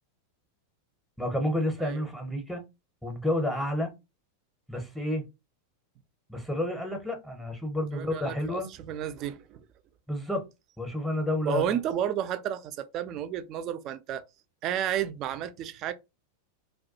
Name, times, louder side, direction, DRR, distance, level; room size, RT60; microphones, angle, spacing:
voice 1, 1.2-2.6 3.0-3.9 4.7-5.3 6.3-8.7 10.1-10.4 10.8-11.8, left 1 dB, ahead, 0.6 m, -30 dB
voice 2, 7.9-9.6 11.5-14.2 14.6-15.9, right 10 dB, 35° right, 0.3 m, -32 dB
2.2 x 2.1 x 2.6 m
figure-of-eight pair, 90°, 0 cm